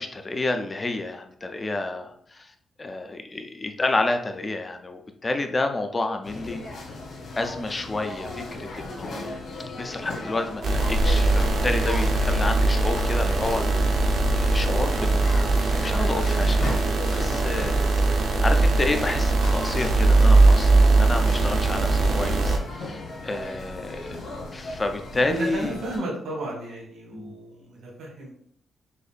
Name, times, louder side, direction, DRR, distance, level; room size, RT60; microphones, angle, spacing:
voice 1, 0.0-2.5 2.8-6.6 6.9-7.0 7.4-9.4 9.8-14.1 14.3-15.2 15.7-17.8 18.0-24.2 24.5-25.8 27.1-27.4, left 2 dB, 20° left, 6 dB, 0.4 m, -30 dB
sound 1, 6.2-26.0, left 2 dB, 60° left, 1.5 m, -37 dB
sound 2, 10.6-22.6, right 2 dB, 55° right, 0.7 m, -20 dB
voice 2, 25.3-28.3, right 1 dB, 75° right, -2 dB, 1.7 m, -33 dB
6.5 x 2.6 x 2.4 m, 0.68 s
wide cardioid pair, 180°, 0 cm